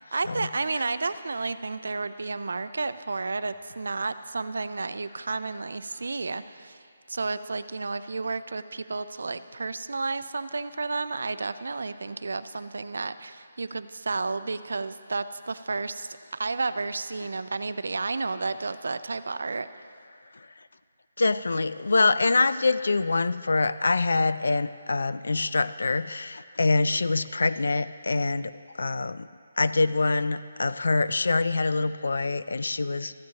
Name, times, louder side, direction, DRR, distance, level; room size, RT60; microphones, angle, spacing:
voice 1, 0.1-6.8 7.1-16.1 16.4-19.7, right 3 dB, 80° right, 13 dB, 0.4 m, -31 dB
voice 2, 21.2-29.3 29.6-33.1, left 3 dB, 85° left, 15 dB, 0.4 m, -25 dB
14.5 x 10.5 x 2.9 m, 2.4 s
hypercardioid pair, 170°, 0 cm